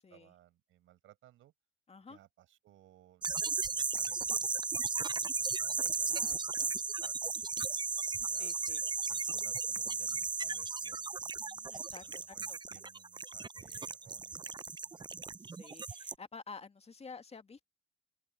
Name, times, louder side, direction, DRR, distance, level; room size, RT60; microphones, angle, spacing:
voice 1, 0.0-1.5 2.0-8.5 9.1-11.3 11.9-15.1, right 14 dB, 70° right, 6.9 m, -63 dB
voice 2, 1.9-2.2 5.8-6.7 8.4-8.8 11.4-12.6 15.4-17.7, left 4 dB, 30° left, 2.2 m, -51 dB
sound 1, 3.2-16.1, right 5 dB, 20° right, 0.6 m, -35 dB
open air
hypercardioid pair, 60°, 21 cm